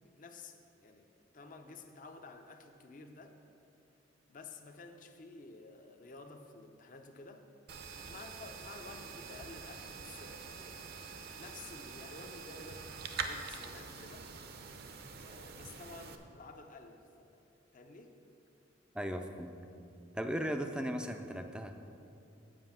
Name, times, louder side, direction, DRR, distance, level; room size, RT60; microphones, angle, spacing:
voice 1, 0.2-1.1 1.3-3.3 4.3-7.5 8.1-10.8 11.4-14.3 15.2-17.4 17.7-18.2, left 3 dB, 45° left, 5 dB, 0.6 m, -52 dB
sound 1, 7.7-16.2, right 5 dB, 55° right, 0.6 m, -45 dB
voice 2, 18.9-19.6 20.1-21.8, equal, 5° right, 6 dB, 0.4 m, -37 dB
7.6 x 5.6 x 7.3 m, 2.6 s
head